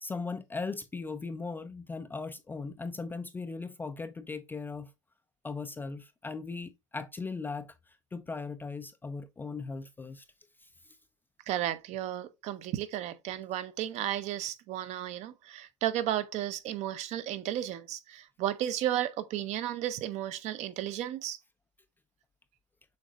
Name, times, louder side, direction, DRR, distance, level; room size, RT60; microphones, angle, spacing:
voice 1, 0.0-4.9 5.4-7.7 8.1-10.2, left 4 dB, 10° left, 0.3 m, -38 dB
voice 2, 11.5-21.4, right 12 dB, 45° right, 0.6 m, -33 dB
6.5 x 3.1 x 2.4 m
supercardioid pair, 110°, 16 cm